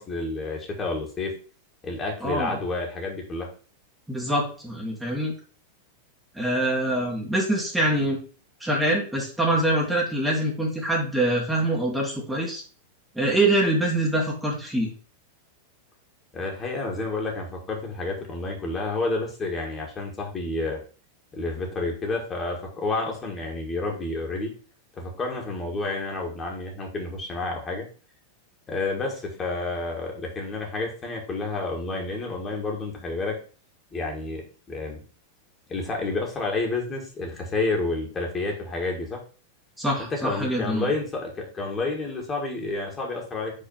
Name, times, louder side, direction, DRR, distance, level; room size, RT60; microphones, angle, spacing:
voice 1, 0.0-1.3 1.8-3.5 16.3-20.8 21.3-24.5 25.0-27.9 28.7-33.4 33.9-35.0 35.7-39.2 40.0-43.5, left 3 dB, 20° left, 0 dB, 2.1 m, -30 dB
voice 2, 2.2-2.6 4.1-5.3 6.3-8.2 8.6-12.6 13.2-14.9 39.8-40.9, right 1 dB, 5° right, -3 dB, 1.8 m, -24 dB
5.5 x 3.8 x 5.7 m, 0.39 s
figure-of-eight pair, 90°, 0 cm